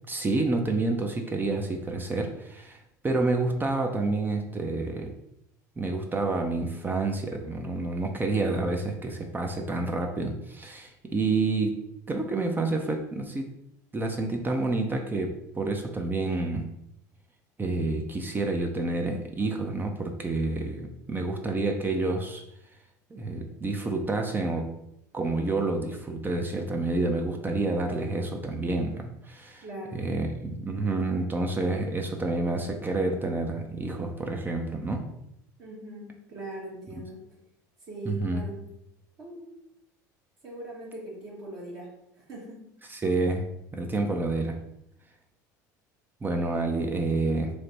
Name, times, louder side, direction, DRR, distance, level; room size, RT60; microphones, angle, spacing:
voice 1, 0.1-2.8 3.0-5.1 5.8-11.8 12.1-13.5 13.9-16.6 17.6-22.4 23.1-24.7 25.1-29.6 29.9-35.0 38.1-38.4 42.9-43.4 43.7-44.6 46.2-47.5, right 2 dB, 20° right, 3 dB, 0.5 m, -28 dB
voice 2, 29.6-30.0 35.6-37.2 37.9-38.6 39.2-39.5 40.4-41.9 42.2-42.7, right 1 dB, 45° right, -6 dB, 1.2 m, -41 dB
3.2 x 2.1 x 4.0 m, 0.80 s
hypercardioid pair, 80°, 10 cm